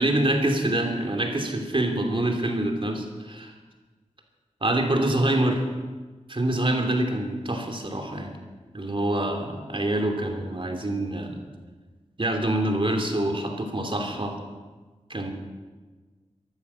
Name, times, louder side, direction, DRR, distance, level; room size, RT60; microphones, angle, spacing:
voice 1, 0.0-3.5 4.6-5.6 6.3-8.3 8.7-11.4 12.2-14.4 15.1-15.3, right 1 dB, 45° right, 3 dB, 2.9 m, -25 dB
15.5 x 11.0 x 7.2 m, 1.3 s
cardioid pair, 50°, 13 cm